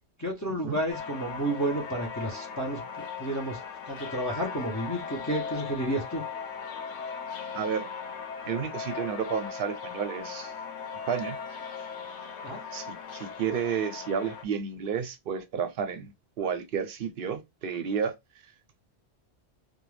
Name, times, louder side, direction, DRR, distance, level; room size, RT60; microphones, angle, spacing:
voice 1, 0.2-3.6 3.9-6.2 12.4-12.6, right 1 dB, 20° left, 0.6 m, -31 dB
sound 1, 0.9-14.4, left 6 dB, 85° left, 0.9 m, -38 dB
voice 2, 7.5-7.9 8.5-10.5 11.1-11.4 12.7-18.1, right 7 dB, 60° right, 0.7 m, -31 dB
2.4 x 2.2 x 3.2 m
omnidirectional pair, 1.2 m